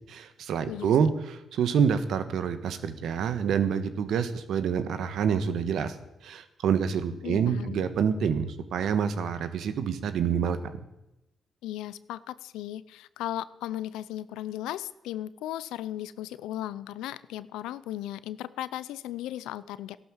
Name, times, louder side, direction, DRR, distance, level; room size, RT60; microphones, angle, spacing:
voice 1, 0.1-5.9 6.2-10.6, right 7 dB, 75° right, 11 dB, 1.4 m, -27 dB
voice 2, 7.2-7.8 11.6-20.0, left 13 dB, 85° left, 17 dB, 0.6 m, -36 dB
14.5 x 12.0 x 7.4 m, 0.90 s
supercardioid pair, 55°, 0 cm